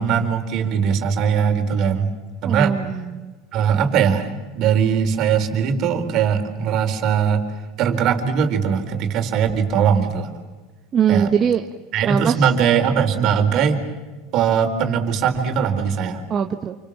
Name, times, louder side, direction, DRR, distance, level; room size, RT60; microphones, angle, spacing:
voice 1, 0.0-2.1 2.4-2.7 3.5-7.5 7.8-10.3 11.1-11.3 11.9-13.8 14.3-16.2, right 7 dB, 55° right, 6 dB, 4.1 m, -20 dB
voice 2, 2.4-3.3 10.9-11.6 12.0-12.3 16.3-16.8, right 7 dB, 35° right, 5 dB, 1.5 m, -21 dB
29.0 x 25.0 x 7.4 m, 1.3 s
hypercardioid pair, 95°, 0 cm